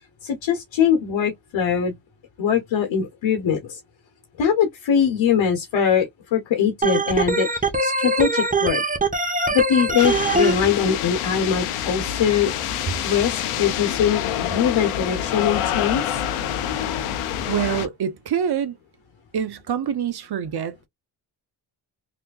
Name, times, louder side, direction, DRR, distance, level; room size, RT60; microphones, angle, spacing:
voice 1, 0.2-1.9 2.4-3.8 4.4-8.8 9.5-12.5 13.0-16.2, left 7 dB, 65° left, 1.2 m, -22 dB
Organ, 6.8-10.5, right 2 dB, 15° right, 1.1 m, -22 dB
sound 1, 10.0-17.9, left 10 dB, 90° left, 0.8 m, -27 dB
voice 2, 17.5-18.8 19.3-20.9, right 8 dB, 50° right, 0.9 m, -26 dB
3.3 x 3.0 x 2.4 m
supercardioid pair, 60°, 49 cm